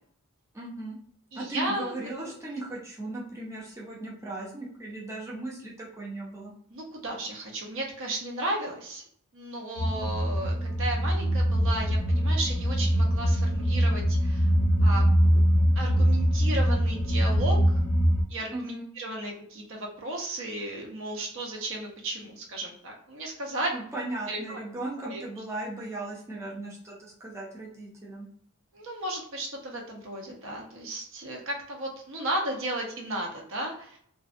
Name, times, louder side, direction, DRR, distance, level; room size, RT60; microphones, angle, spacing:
voice 1, 0.5-1.0 1.3-6.5 18.5-18.9 23.7-28.3, right 2 dB, 15° right, -4 dB, 0.5 m, -37 dB
voice 2, 1.3-2.3 6.7-9.0 9.3-14.5 14.8-15.0 15.8-17.8 18.3-23.7 24.3-24.6 25.1-25.2 28.7-34.0, right 1 dB, 65° right, 0 dB, 0.6 m, -34 dB
sound 1, 9.8-18.2, equal, 85° left, 0.5 m, -23 dB
2.5 x 2.1 x 2.4 m, 0.64 s
head